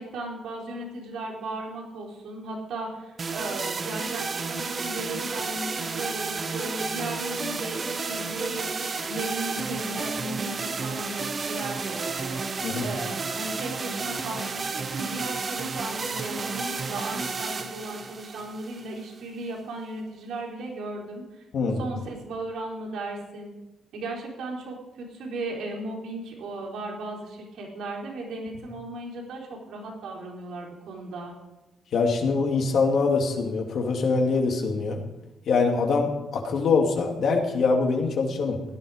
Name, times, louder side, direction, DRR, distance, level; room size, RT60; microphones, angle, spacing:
voice 1, 0.0-21.4 21.8-23.6 23.9-31.3, right 2 dB, 85° right, -1 dB, 4.1 m, -36 dB
sound 1, 3.2-19.2, right 4 dB, 35° right, 1.3 m, -32 dB
voice 2, 31.9-35.0 35.5-38.6, left 4 dB, 65° left, 1 dB, 2.6 m, -24 dB
17.0 x 12.0 x 5.1 m, 1.0 s
cardioid pair, 120°, 0 cm